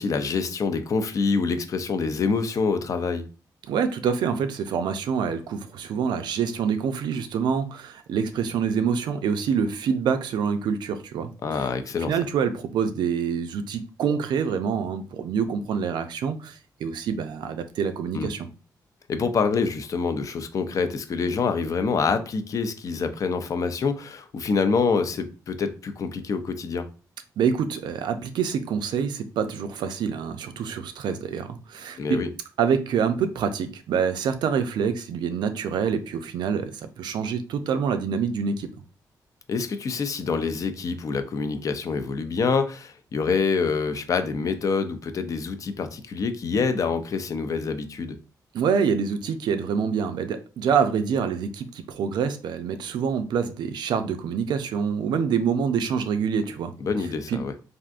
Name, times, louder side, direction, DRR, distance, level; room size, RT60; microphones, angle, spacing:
voice 1, 0.0-3.2 11.4-12.1 18.1-18.3 19.1-26.9 32.0-32.3 39.5-48.2 56.8-57.5, left 5 dB, 50° left, 0.4 m, -26 dB
voice 2, 3.7-11.3 12.1-18.5 27.4-32.2 32.6-38.7 48.5-56.7 57.3-57.4, right 6 dB, 85° right, 0.4 m, -26 dB
3.4 x 2.5 x 2.4 m
cardioid pair, 110°, 7 cm